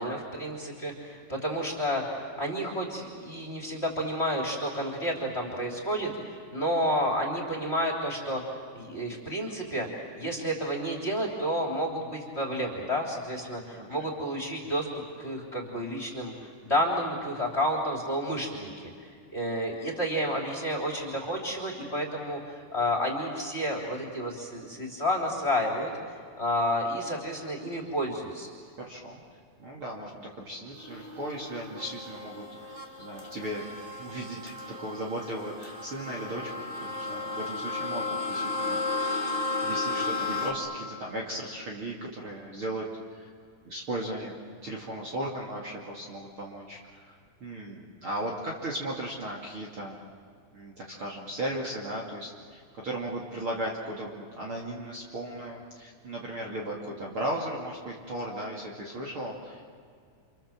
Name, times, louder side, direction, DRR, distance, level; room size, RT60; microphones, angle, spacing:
voice 1, 0.0-9.9 10.1-25.9 26.4-28.5, equal, 15° left, 2 dB, 3.5 m, -30 dB
voice 2, 13.7-14.1 28.8-29.2 29.6-33.7 33.9-36.5 36.8-38.8 39.3-43.3 43.6-50.0 50.5-59.8, right 1 dB, 40° right, -3 dB, 2.8 m, -36 dB
sound 1, 30.8-40.5, left 3 dB, 15° right, 2.4 m, -34 dB
29.5 x 27.0 x 7.5 m, 2.2 s
omnidirectional pair, 4.3 m